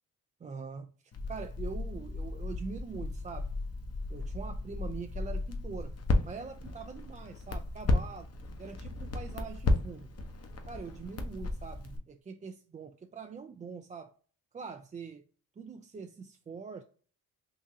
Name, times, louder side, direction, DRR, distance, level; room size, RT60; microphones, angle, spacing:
voice 1, 0.4-0.9 1.3-3.5 4.1-8.3 8.6-10.1 10.7-14.1 14.5-15.2 15.6-16.8, right 5 dB, 20° right, 0.3 m, -43 dB
Crackle, 1.1-12.0, left 2 dB, 40° left, 0.8 m, -34 dB
3.8 x 2.6 x 2.6 m
supercardioid pair, 60°, 36 cm